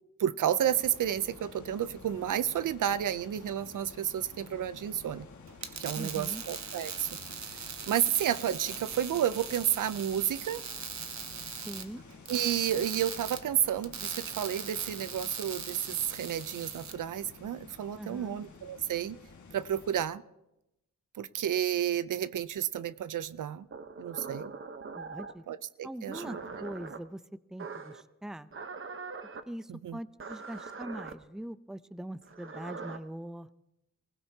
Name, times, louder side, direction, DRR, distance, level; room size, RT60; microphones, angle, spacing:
voice 1, 0.2-5.3 5.8-7.1 7.5-10.6 12.3-19.2 19.5-20.2 21.2-23.7 24.0-24.5 25.5-26.4 29.7-30.0, right 10 dB, 80° right, 16 dB, 0.6 m, -31 dB
sound 1, 0.6-20.1, left 4 dB, 70° left, 1.8 m, -51 dB
sound 2, 5.5-16.9, right 6 dB, 60° right, 1.2 m, -41 dB
voice 2, 6.0-6.4 11.6-12.0 18.0-18.4 25.0-25.4 25.8-27.2 27.5-28.5 29.5-33.5, right 1 dB, ahead, 14 dB, 0.5 m, -42 dB
sound 3, 23.7-25.4 26.1-27.0 27.6-28.0 28.5-29.4 30.2-31.1 32.2-33.0, right 4 dB, 40° right, 1.0 m, -42 dB
24.5 x 16.0 x 2.8 m, 0.88 s
cardioid pair, 70°, 31 cm